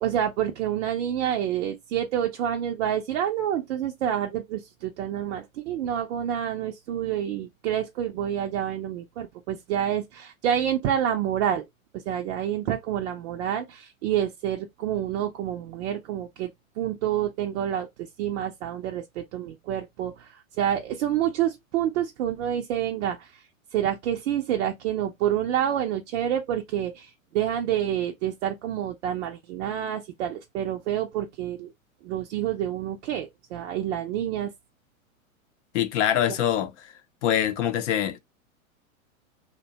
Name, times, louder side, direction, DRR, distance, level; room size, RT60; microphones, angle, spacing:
voice 1, 0.0-11.6 11.9-16.5 16.8-23.4 23.7-31.7 32.0-34.5 36.3-36.4, right 10 dB, 55° right, 0.5 m, -28 dB
voice 2, 35.7-36.7 37.2-38.2, left 10 dB, 60° left, 0.6 m, -24 dB
2.6 x 2.1 x 2.7 m
hypercardioid pair, 115°, 42 cm